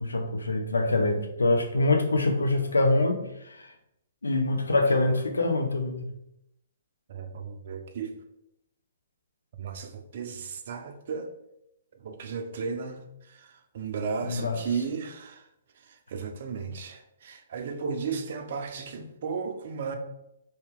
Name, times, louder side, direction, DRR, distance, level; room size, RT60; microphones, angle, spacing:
voice 1, 0.0-3.2 3.5-3.7 4.2-6.1 14.2-14.6, left 2 dB, 85° left, 0.5 m, -24 dB
voice 2, 7.1-8.1 9.6-11.3 11.9-15.5 15.8-20.0, right 5 dB, 55° right, 0.4 m, -35 dB
2.7 x 2.2 x 3.5 m
figure-of-eight pair, 125°, 0 cm